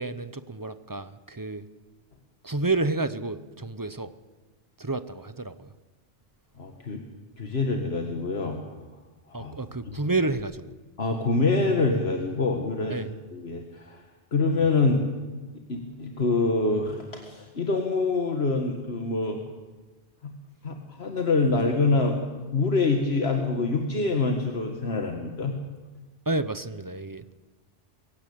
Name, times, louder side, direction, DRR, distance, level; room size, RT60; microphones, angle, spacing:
voice 1, 0.0-1.6 2.4-4.1 4.8-5.7 9.3-10.7 12.9-13.1 26.3-27.3, right 3 dB, 20° right, 13 dB, 0.8 m, -30 dB
voice 2, 6.6-7.0 7.4-8.6 9.3-9.5 9.9-10.0 11.0-13.0 13.3-14.0 14.3-15.0 15.7-19.4 20.2-20.3 20.6-25.6, left 3 dB, 75° left, 3 dB, 2.0 m, -25 dB
23.0 x 16.5 x 8.7 m, 1.3 s
omnidirectional pair, 1.1 m